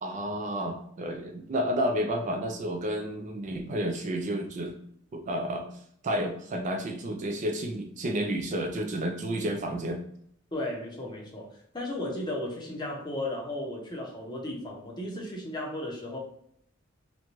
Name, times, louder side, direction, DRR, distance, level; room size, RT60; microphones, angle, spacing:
voice 1, 0.0-4.8 5.1-5.7 6.0-10.0, right 1 dB, 35° right, 4 dB, 0.3 m, -31 dB
voice 2, 10.5-16.2, left 1 dB, 20° left, -1 dB, 0.7 m, -35 dB
2.6 x 2.2 x 2.9 m, 0.70 s
head